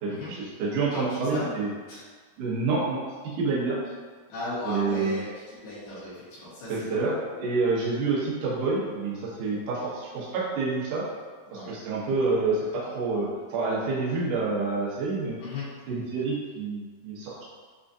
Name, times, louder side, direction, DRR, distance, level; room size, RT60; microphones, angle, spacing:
voice 1, 0.0-1.7 2.4-3.8 4.6-5.2 6.7-11.1 11.5-15.3 15.9-17.4, right 3 dB, 85° right, -8 dB, 1.7 m, -28 dB
voice 2, 0.9-1.5 1.9-2.1 4.3-7.2 11.5-11.7 15.4-15.7, left 2 dB, 70° left, -11 dB, 3.0 m, -36 dB
7.1 x 2.4 x 2.6 m, 1.5 s
omnidirectional pair, 5.2 m